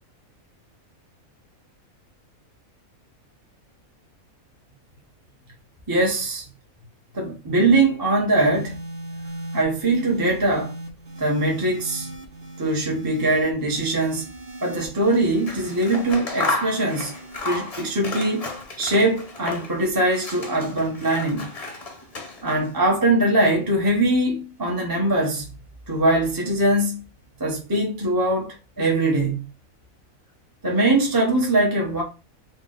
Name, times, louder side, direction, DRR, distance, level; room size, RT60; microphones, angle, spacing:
voice 1, 5.9-6.4 7.1-8.8 9.5-10.7 11.2-12.1 12.6-14.2 14.6-17.1 17.4-18.5 18.8-21.5 22.4-25.5 25.9-27.0 27.4-29.5 30.6-32.0, right 2 dB, 20° right, 0.8 m, -22 dB
sound 1, 8.4-24.9 25.8-26.2, right 1 dB, 60° right, 1.2 m, -41 dB
Scissors, 15.3-19.8 20.1-22.7, left 2 dB, 35° left, 0.7 m, -32 dB
4.0 x 2.3 x 3.8 m
omnidirectional pair, 1.5 m